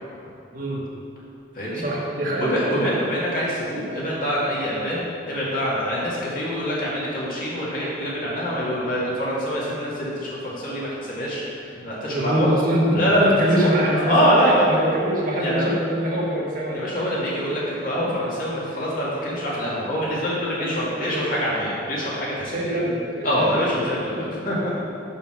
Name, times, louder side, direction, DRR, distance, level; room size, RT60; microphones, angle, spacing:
voice 1, 0.5-0.8 1.7-2.8 12.1-17.0 17.7-18.1 18.7-18.8 20.5-21.4 22.5-23.8 24.2-24.7, equal, 45° right, -4 dB, 1.4 m, -25 dB
voice 2, 2.4-12.5 12.9-13.3 13.6-14.9 15.4-15.7 16.7-22.7 23.2-24.8, equal, 50° left, -6 dB, 2.0 m, -25 dB
6.5 x 5.5 x 6.1 m, 2.6 s
head